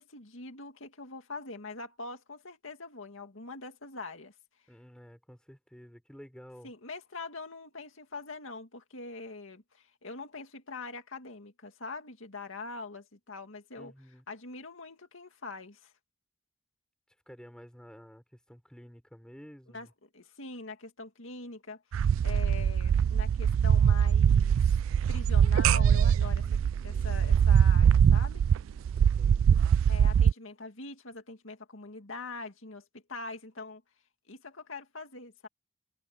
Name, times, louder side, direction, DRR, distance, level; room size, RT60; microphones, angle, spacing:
voice 1, 0.0-4.3 6.6-13.9 14.3-15.9 19.7-19.9 20.1-21.8 22.2-24.6 24.9-26.5 26.8-28.4 29.9-33.8 34.3-35.5, left 3 dB, 80° left, 2.2 m, -43 dB
voice 2, 4.7-6.7 13.8-14.2 17.3-19.9 26.3-27.2 28.9-29.6, equal, 5° left, 6.2 m, -52 dB
sound 1, 21.9-30.3, right 8 dB, 85° right, 0.3 m, -23 dB
head